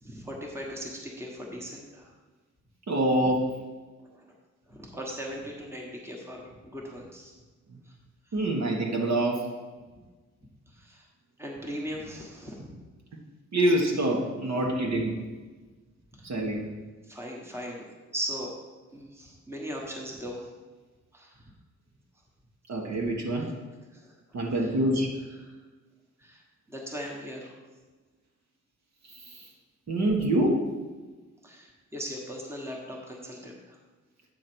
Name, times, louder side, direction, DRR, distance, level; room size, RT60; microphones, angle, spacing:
voice 1, 0.0-2.1 4.1-4.2 4.7-7.3 7.8-7.9 10.6-11.1 11.4-12.8 16.1-16.5 17.1-18.6 18.9-20.5 21.1-21.5 23.2-23.5 23.9-25.0 25.4-25.6 26.2-26.4 26.7-27.6 31.4-33.8, equal, 10° right, -1 dB, 1.2 m, -39 dB
voice 2, 2.9-3.5 8.3-9.5 13.5-15.1 16.2-16.7 22.7-23.5 24.3-25.1 29.9-30.6, right 1 dB, 60° right, -1 dB, 1.4 m, -25 dB
8.6 x 4.2 x 6.1 m, 1.3 s
wide cardioid pair, 145°, 30 cm